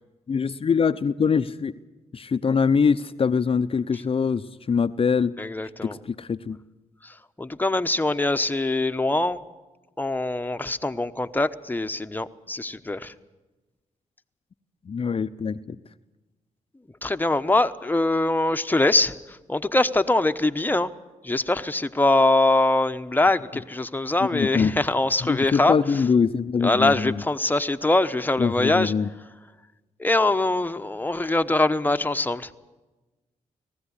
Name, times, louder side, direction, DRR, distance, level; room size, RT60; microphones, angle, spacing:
voice 1, 0.3-1.7 2.1-5.3 5.8-6.6 14.9-15.8 24.3-24.7 25.2-27.1 28.4-29.1, left 6 dB, 45° left, 11 dB, 0.7 m, -23 dB
voice 2, 5.4-6.0 7.0-9.4 10.0-13.1 17.0-20.9 21.2-26.0 26.6-28.9 30.0-32.5, left 2 dB, 15° left, 9 dB, 1.0 m, -23 dB
19.5 x 15.0 x 9.9 m, 1.1 s
cardioid pair, 60°, 14 cm